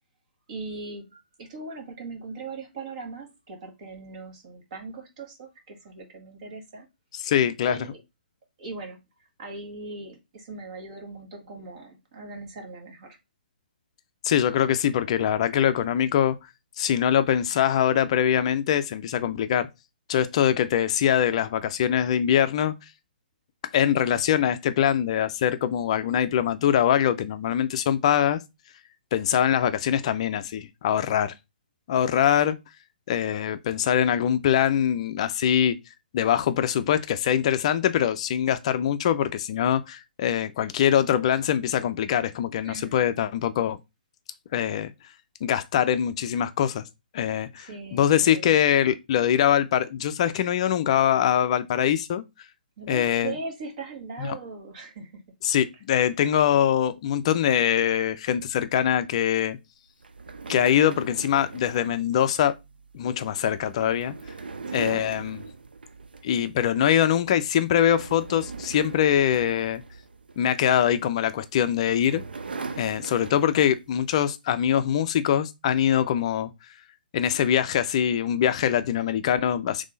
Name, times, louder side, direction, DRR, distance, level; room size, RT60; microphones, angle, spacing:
voice 1, 0.5-6.8 7.6-8.0 8.6-9.0 9.4-13.2 42.6-43.0 47.6-48.5 52.8-55.2 64.7-65.2, right 3 dB, 45° right, 1.6 m, -39 dB
voice 2, 7.1-7.9 14.2-16.4 16.8-19.7 20.1-22.7 23.7-28.4 29.1-31.3 31.9-32.6 33.1-35.8 36.1-43.8 44.5-44.9 45.4-46.8 47.1-52.2 52.9-53.3 54.2-54.3 55.4-59.6 60.5-62.5 62.9-64.1 64.7-65.4 66.2-69.8 70.4-72.2 72.8-76.5 77.1-79.8, left 10 dB, 40° left, 0.4 m, -23 dB
sound 1, 60.0-66.6 66.9-67.2 67.6-70.6 71.4-73.9, right 4 dB, 75° right, 0.6 m, -40 dB
3.6 x 3.2 x 3.8 m
figure-of-eight pair, 135°, 5 cm